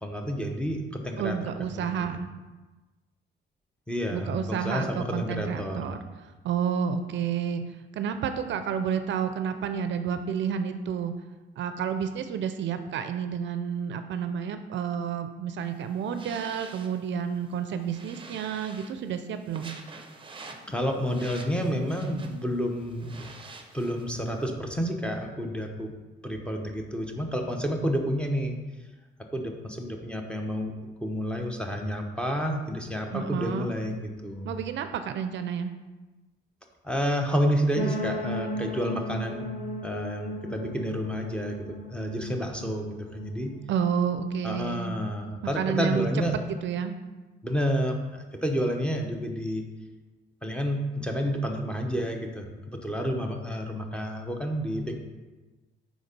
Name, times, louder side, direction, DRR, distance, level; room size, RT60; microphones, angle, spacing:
voice 1, 0.0-1.4 1.7-1.9 3.9-5.9 20.7-23.3 23.7-25.9 26.2-28.6 29.2-30.7 31.0-34.5 36.8-39.5 39.8-43.5 44.4-46.4 47.4-49.7 50.4-54.9, equal, 5° left, 2 dB, 0.9 m, -30 dB
voice 2, 1.2-2.3 4.1-6.0 6.4-7.6 7.9-11.1 11.6-19.7 33.1-33.7 34.4-35.7 43.7-44.9 45.6-47.0, right 7 dB, 70° right, 9 dB, 0.5 m, -30 dB
sound 1, 15.6-24.5, right 3 dB, 25° right, 0.7 m, -48 dB
sound 2, 37.7-43.6, left 1 dB, 85° left, 1.2 m, -36 dB
4.9 x 4.0 x 5.1 m, 1.2 s
cardioid pair, 90°, 20 cm